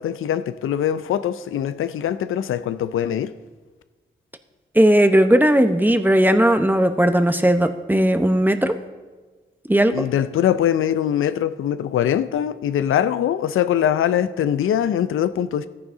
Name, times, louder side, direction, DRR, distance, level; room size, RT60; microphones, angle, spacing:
voice 1, 0.0-3.3 9.9-15.7, left 10 dB, 85° left, 0.5 m, -22 dB
voice 2, 4.7-8.8 9.7-10.0, right 1 dB, 10° right, 0.9 m, -17 dB
13.5 x 9.6 x 3.8 m
supercardioid pair, 45°, 21 cm